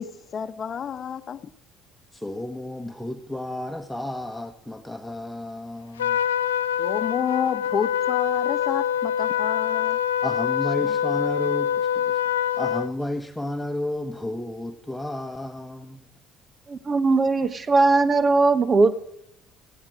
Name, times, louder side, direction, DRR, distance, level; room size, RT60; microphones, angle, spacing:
voice 1, 0.0-1.4 6.8-10.0 10.8-11.0, left 7 dB, 40° left, 1.1 m, -29 dB
voice 2, 2.1-6.2 10.2-12.2 12.5-16.1, left 1 dB, 5° left, 1.5 m, -32 dB
Trumpet, 6.0-12.9, left 10 dB, 80° left, 0.5 m, -25 dB
voice 3, 16.7-19.0, right 3 dB, 35° right, 1.3 m, -19 dB
18.0 x 16.0 x 4.8 m
figure-of-eight pair, 55°, 0 cm